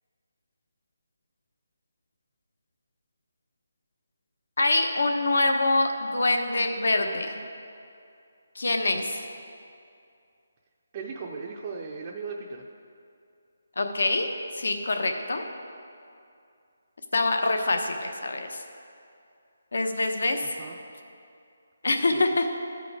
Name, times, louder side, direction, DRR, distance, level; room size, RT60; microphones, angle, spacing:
voice 1, 4.6-7.4 8.5-9.2 13.8-14.3 14.6-15.4 17.1-18.6 19.7-20.5 21.8-22.5, left 2 dB, 75° left, 5 dB, 0.9 m, -25 dB
voice 2, 10.9-12.7 20.6-20.8 21.9-22.3, right 4 dB, 25° right, 0 dB, 0.4 m, -37 dB
13.0 x 5.1 x 4.7 m, 2.4 s
hypercardioid pair, 175°, 0 cm